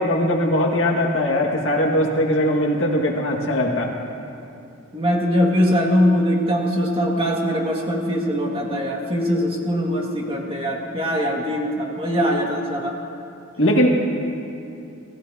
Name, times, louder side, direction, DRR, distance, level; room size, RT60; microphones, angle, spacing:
voice 1, 0.0-3.9 13.6-14.1, equal, 70° left, -1 dB, 2.1 m, -20 dB
voice 2, 4.9-13.0, equal, 25° right, -2 dB, 2.1 m, -22 dB
28.0 x 15.0 x 2.9 m, 2.7 s
head